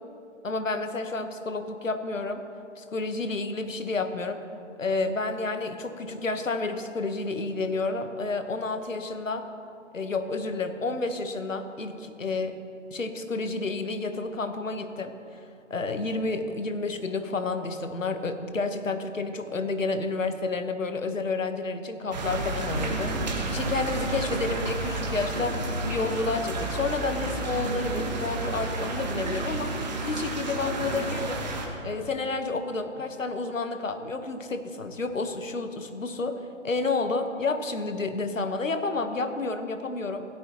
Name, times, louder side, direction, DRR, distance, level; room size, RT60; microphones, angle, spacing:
voice 1, 0.4-2.4 2.8-4.4 4.8-9.5 9.9-12.6 12.9-15.4 15.7-25.6 25.8-29.7 30.0-31.5 31.8-40.3, left 3 dB, 75° left, 8 dB, 1.3 m, -30 dB
sound 1, 22.1-31.7, right 2 dB, 35° right, 1.5 m, -31 dB
16.0 x 13.5 x 3.0 m, 2.5 s
figure-of-eight pair, 155°, 39 cm